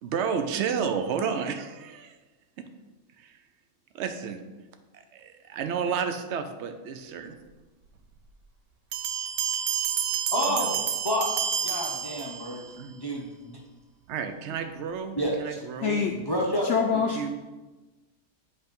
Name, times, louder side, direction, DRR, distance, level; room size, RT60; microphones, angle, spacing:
voice 1, 0.0-2.2 2.6-2.7 3.2-3.4 3.9-4.4 4.9-7.3 10.5-10.7 12.8-13.0 14.1-16.0 16.9-17.3, right 6 dB, 60° right, 0.7 m, -31 dB
Bell, 8.9-12.7, right 8 dB, 85° right, 1.2 m, -29 dB
voice 2, 10.3-11.3 11.6-12.6 12.9-13.6 15.2-15.6 16.1-16.7, equal, 25° left, 0.6 m, -29 dB
voice 3, 15.8-16.2 16.6-17.3, left 6 dB, 75° left, 0.6 m, -25 dB
8.0 x 3.5 x 5.3 m
omnidirectional pair, 1.7 m